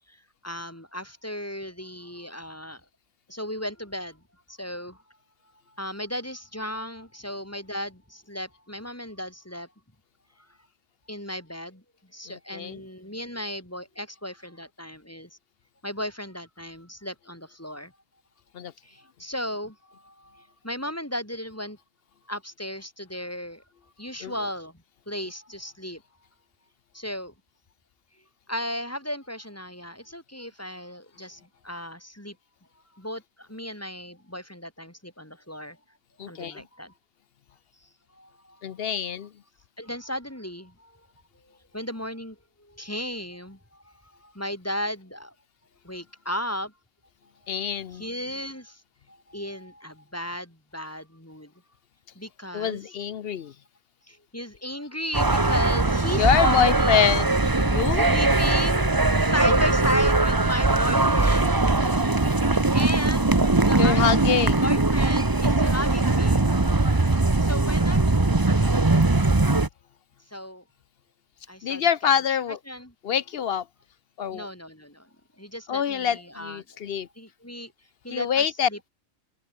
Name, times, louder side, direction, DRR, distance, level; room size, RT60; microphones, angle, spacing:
voice 1, 0.4-2.8 3.3-4.2 4.5-5.0 5.7-9.7 11.1-11.8 12.1-15.4 15.8-17.9 18.8-21.8 22.3-23.6 24.0-24.8 25.1-26.0 26.9-27.3 28.5-32.4 32.9-35.8 36.3-36.9 38.1-38.6 39.8-41.0 41.4-45.3 45.8-46.7 47.9-48.8 49.1-51.5 52.2-52.9 54.1-57.0 57.9-58.9 59.2-61.6 62.7-63.4 63.6-66.4 67.4-68.7 70.3-70.6 71.5-71.9 72.7-72.9 74.3-75.1 75.4-77.7 78.0-78.9, equal, 10° left, 3.5 m, -35 dB
voice 2, 12.3-12.8 18.5-18.7 24.2-24.3 36.2-36.6 38.6-39.3 47.5-48.0 52.5-53.5 56.2-58.1 59.5-59.6 63.8-64.6 71.6-72.6 73.0-73.6 74.2-74.5 75.7-77.1 78.1-78.7, left 8 dB, 55° left, 0.7 m, -25 dB
sound 1, 55.1-69.7, right 2 dB, 15° right, 1.1 m, -21 dB
open air
omnidirectional pair, 1.5 m